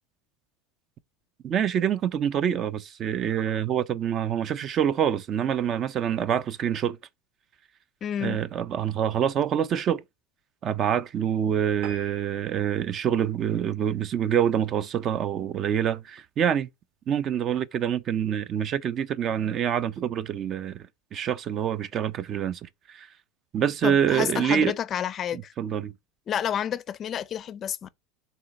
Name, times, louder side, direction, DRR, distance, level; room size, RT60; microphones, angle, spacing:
voice 1, 1.4-7.0 8.2-10.0 10.6-16.7 17.1-20.9 21.1-22.6 22.9-23.1 23.5-24.7 25.3-25.9, right 9 dB, 30° right, 0.5 m, -26 dB
voice 2, 8.0-8.4 23.8-25.5 26.3-27.9, left 9 dB, 25° left, 0.5 m, -30 dB
sound 1, 11.8-14.6 15.0-15.2 15.7-15.8 16.1-16.2 16.4-16.5, right 6 dB, 45° right, 1.5 m, -47 dB
6.8 x 3.9 x 6.1 m
supercardioid pair, 160°, 0 cm